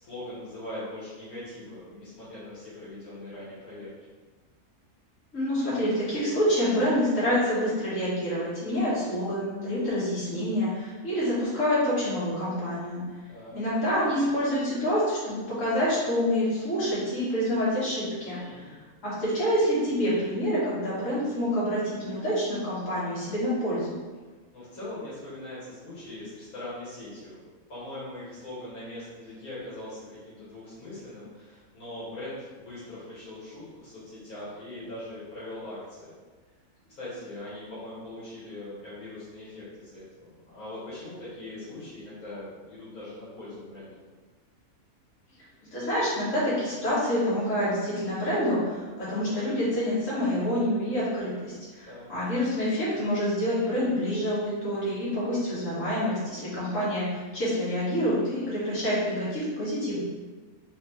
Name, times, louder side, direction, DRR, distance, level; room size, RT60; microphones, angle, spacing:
voice 1, 0.0-3.9 13.3-13.6 18.4-18.7 24.5-27.4 27.7-36.1 36.9-44.0 51.9-52.1, left 1 dB, 75° left, -10 dB, 1.9 m, -41 dB
voice 2, 5.3-13.0 13.5-18.7 19.0-23.9 45.6-60.0, equal, 55° left, -11 dB, 2.0 m, -27 dB
4.1 x 3.3 x 3.1 m, 1.4 s
omnidirectional pair, 1.6 m